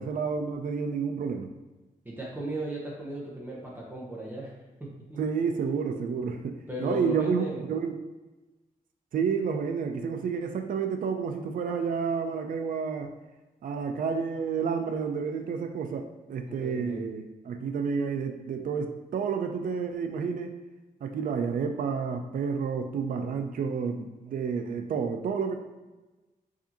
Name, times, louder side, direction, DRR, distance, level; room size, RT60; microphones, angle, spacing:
voice 1, 0.0-1.5 5.2-7.9 9.1-13.1 13.6-20.5 21.0-25.5, right 6 dB, 65° right, 5 dB, 0.4 m, -30 dB
voice 2, 2.0-4.5 4.8-5.2 6.7-7.7 16.5-17.0, right 1 dB, 15° right, -4 dB, 0.8 m, -36 dB
4.7 x 2.6 x 2.8 m, 1.1 s
wide cardioid pair, 115°, 15 cm